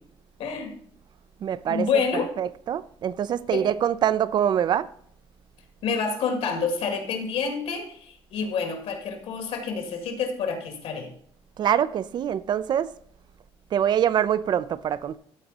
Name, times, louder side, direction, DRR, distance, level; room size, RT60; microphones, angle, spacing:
voice 1, 0.4-0.8 1.7-2.3 3.5-3.6 5.8-11.1, left 5 dB, 75° left, 2.0 m, -28 dB
voice 2, 1.4-1.9 2.4-4.9 11.6-12.9 13.7-15.2, right 9 dB, 45° right, 0.4 m, -24 dB
14.0 x 4.9 x 4.1 m
cardioid pair, 155°, 10 cm